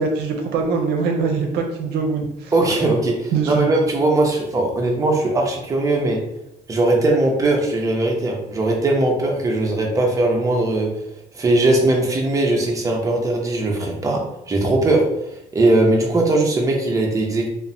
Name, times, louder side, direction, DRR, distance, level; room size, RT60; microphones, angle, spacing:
voice 1, 0.0-2.5 3.3-3.7, right 4 dB, 75° right, 2 dB, 0.5 m, -22 dB
voice 2, 2.5-6.2 6.7-10.9 11.3-15.0 15.5-17.5, right 2 dB, 20° right, 0 dB, 0.6 m, -19 dB
2.9 x 2.1 x 2.5 m, 0.79 s
cardioid pair, 110°, 17 cm